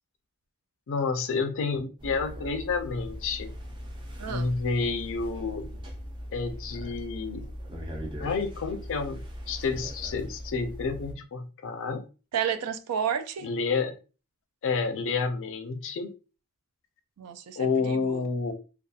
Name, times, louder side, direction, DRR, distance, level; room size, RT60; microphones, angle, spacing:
voice 1, 0.9-3.5 4.3-5.7 6.3-7.5 8.2-9.2 9.5-12.0 13.4-13.9 14.6-16.1 17.6-18.5, left 4 dB, 60° left, 0.4 m, -29 dB
sound 1, 2.0-11.1, equal, 20° right, 0.5 m, -40 dB
voice 2, 4.2-4.5 12.3-13.5 17.2-18.3, right 8 dB, 85° right, 0.4 m, -31 dB
2.7 x 2.3 x 2.3 m
head